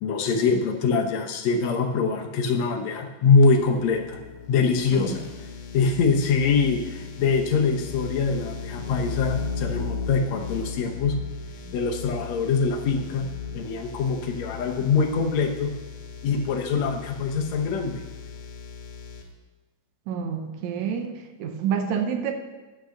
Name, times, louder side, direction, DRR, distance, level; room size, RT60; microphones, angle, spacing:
voice 1, 0.0-4.2 4.5-5.2 5.7-11.2 11.7-13.2 13.5-15.7 16.2-18.0, left 4 dB, 65° left, 3 dB, 2.0 m, -23 dB
sound 1, 3.4-19.2, left 5 dB, 85° left, 2.7 m, -36 dB
voice 2, 20.1-21.1 21.4-22.3, right 7 dB, 70° right, 6 dB, 1.9 m, -28 dB
10.0 x 6.0 x 6.4 m, 1.2 s
omnidirectional pair, 3.7 m